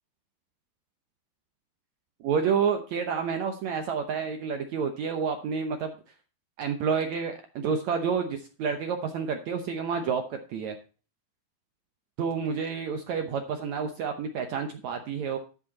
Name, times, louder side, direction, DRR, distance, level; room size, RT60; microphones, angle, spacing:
voice 1, 2.2-6.0 6.6-10.8 12.2-15.4, right 6 dB, 70° right, 6 dB, 1.8 m, -29 dB
12.5 x 7.7 x 4.1 m, 0.37 s
omnidirectional pair, 4.3 m